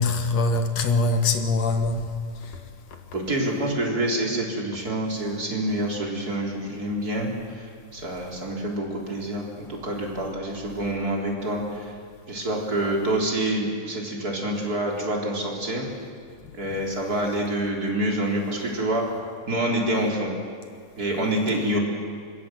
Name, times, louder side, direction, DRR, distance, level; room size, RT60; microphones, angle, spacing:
voice 1, 0.0-2.7 2.9-3.0 16.4-16.5, left 3 dB, 60° left, 2.5 m, -24 dB
voice 2, 3.1-11.9 12.3-15.9 16.5-19.1 19.5-20.3 21.0-21.8, right 1 dB, 30° right, 4.1 m, -27 dB
25.5 x 22.0 x 7.7 m
omnidirectional pair, 3.7 m